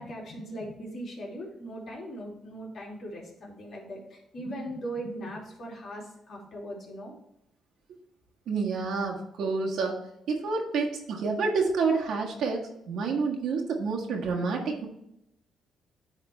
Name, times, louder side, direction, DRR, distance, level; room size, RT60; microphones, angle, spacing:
voice 1, 0.0-7.1, right 1 dB, 55° left, -2 dB, 2.7 m, -39 dB
voice 2, 8.5-10.0 10.3-14.9, right 4 dB, 75° right, 0 dB, 1.5 m, -28 dB
10.0 x 3.7 x 3.3 m, 0.82 s
cardioid pair, 90°, 0 cm